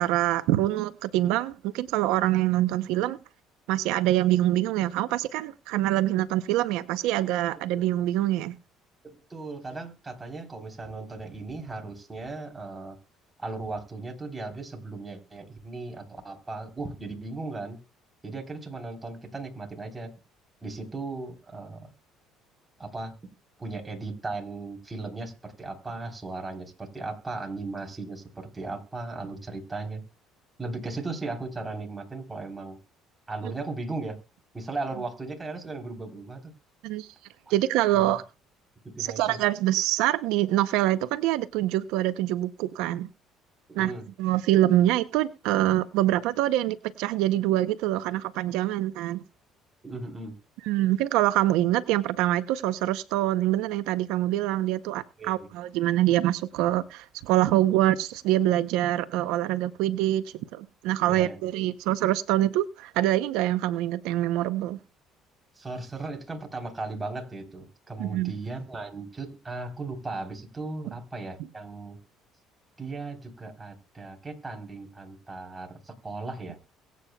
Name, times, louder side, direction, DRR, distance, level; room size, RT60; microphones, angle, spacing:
voice 1, 0.0-3.2 3.7-8.6 36.8-37.1 37.5-38.2 39.0-43.1 43.8-43.9 44.2-49.2 50.6-60.2 60.5-64.8 68.0-68.3, right 14 dB, 80° right, 0.6 m, -25 dB
voice 2, 9.0-13.0 13.4-17.8 18.2-20.1 20.6-21.9 22.8-23.1 23.6-30.0 30.6-32.8 33.3-34.2 34.5-36.5 37.9-38.1 38.8-39.4 43.7-44.1 49.8-50.4 55.2-55.5 61.1-61.4 65.6-72.0 72.8-76.6, right 3 dB, 15° right, 3.5 m, -37 dB
23.0 x 8.5 x 2.2 m
supercardioid pair, 90°, 0 cm